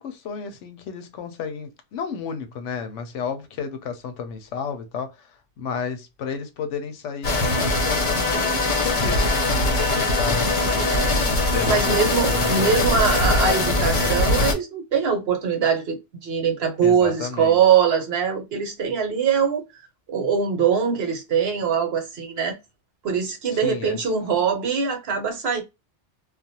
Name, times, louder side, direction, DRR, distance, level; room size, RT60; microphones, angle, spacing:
voice 1, 0.0-5.3 5.6-12.0 12.3-13.6 16.8-17.6 23.5-24.0, left 6 dB, 85° left, 1.0 m, -32 dB
sound 1, 7.2-14.5, left 2 dB, 50° left, 0.7 m, -21 dB
voice 2, 10.9-11.3 11.7-19.6 20.1-22.6 23.0-25.6, right 6 dB, 60° right, 0.9 m, -22 dB
2.4 x 2.1 x 2.7 m
omnidirectional pair, 1.2 m